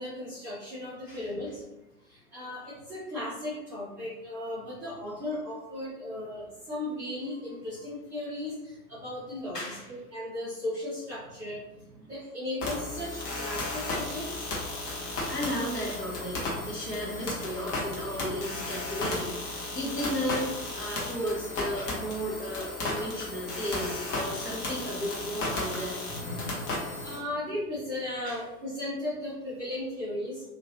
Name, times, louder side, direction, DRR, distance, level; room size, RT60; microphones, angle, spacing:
voice 1, 0.0-1.6 2.1-11.6 12.1-14.5 26.1-30.4, left 1 dB, 5° right, -16 dB, 0.3 m, -36 dB
voice 2, 9.5-9.9 14.0-26.0 28.2-28.4, equal, 90° left, -4 dB, 1.3 m, -35 dB
sound 1, 12.6-27.2, left 2 dB, 45° left, 1.2 m, -34 dB
2.9 x 2.8 x 2.8 m, 0.97 s
figure-of-eight pair, 95°, 47 cm